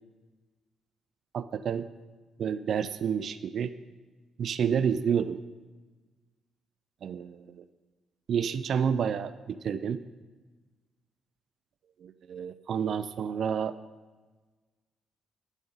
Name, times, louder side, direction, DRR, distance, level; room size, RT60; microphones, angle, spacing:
voice 1, 1.3-1.9 2.4-3.7 4.4-5.4 7.0-7.6 8.3-10.0 12.3-13.8, right 7 dB, 60° right, 13 dB, 0.4 m, -29 dB
8.8 x 6.4 x 8.2 m, 1.3 s
cardioid pair, 90°, 0 cm